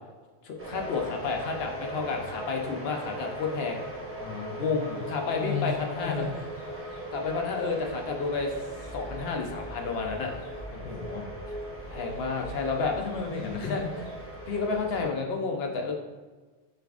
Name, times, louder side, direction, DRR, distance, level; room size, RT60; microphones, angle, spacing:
voice 1, 0.4-3.8 4.6-6.3 7.1-8.5 8.9-10.3 11.9-13.0 13.6-13.8 14.5-15.9, left 4 dB, 65° left, 2 dB, 0.8 m, -30 dB
sound 1, 0.6-15.1, right 1 dB, 15° right, 0.7 m, -39 dB
voice 2, 4.2-5.0 5.4-6.7 10.7-11.5 13.0-14.0, left 5 dB, 45° left, 1 dB, 0.5 m, -35 dB
sound 2, 4.7-7.1 8.2-10.6 11.8-14.3, equal, 90° left, 1.2 m, -50 dB
6.4 x 2.5 x 2.4 m, 1.3 s
omnidirectional pair, 1.2 m